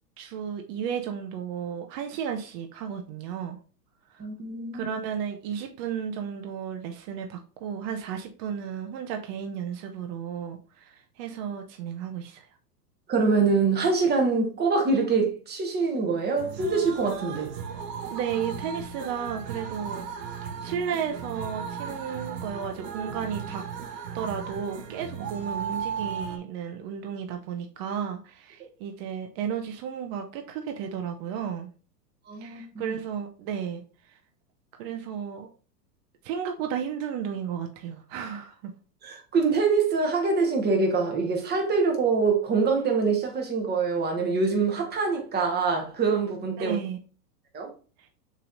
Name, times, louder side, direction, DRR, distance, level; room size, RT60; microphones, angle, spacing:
voice 1, 0.2-3.6 4.1-4.3 4.7-12.5 18.1-20.1 20.4-23.6 24.1-31.7 32.4-33.8 34.1-34.2 34.8-35.5 36.2-38.7 46.6-47.0 48.0-48.1, right 8 dB, 40° right, 0.7 m, -33 dB
voice 2, 4.2-4.9 13.1-17.5 32.3-33.0 39.0-46.8 47.5-47.7, right 4 dB, 20° right, 1.2 m, -25 dB
sound 1, 16.4-26.4, right 6 dB, 80° right, 0.9 m, -36 dB
6.7 x 3.2 x 2.5 m
hypercardioid pair, 120°, 48 cm